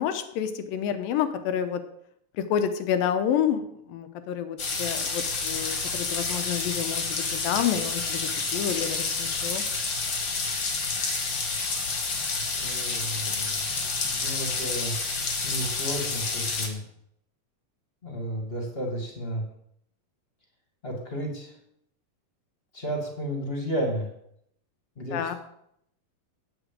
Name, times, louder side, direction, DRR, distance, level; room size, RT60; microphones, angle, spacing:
voice 1, 0.0-1.8 2.4-3.6 3.9-9.6 25.1-25.4, left 9 dB, 75° left, 10 dB, 2.6 m, -29 dB
sound 1, 4.6-16.7, left 4 dB, 40° left, 1.8 m, -29 dB
voice 2, 12.6-13.6 14.0-15.0 15.4-16.8 18.0-19.4 20.8-21.5 22.7-24.1 24.9-25.4, equal, 20° left, 1 dB, 1.7 m, -32 dB
9.3 x 8.2 x 7.6 m, 0.73 s
omnidirectional pair, 4.3 m